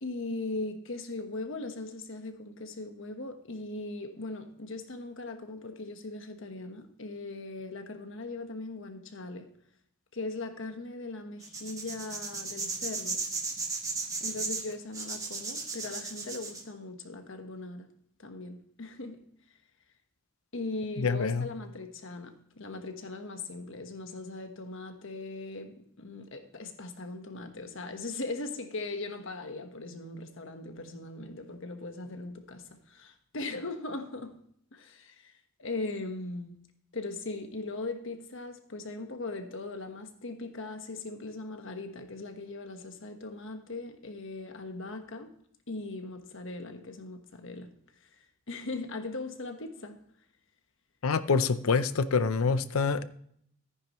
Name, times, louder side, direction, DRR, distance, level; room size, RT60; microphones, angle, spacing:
voice 1, 0.0-9.5 10.1-13.2 14.2-17.9 18.2-19.2 20.5-34.4 34.7-35.3 35.6-36.6 36.9-45.3 45.7-47.7 48.0-50.0, left 2 dB, 65° left, 1.3 m, -39 dB
sound 1, 11.4-16.6, right 4 dB, 15° right, 1.4 m, -35 dB
voice 2, 21.0-21.5 51.0-53.0, left 4 dB, 85° left, 0.6 m, -26 dB
13.5 x 9.8 x 3.1 m
head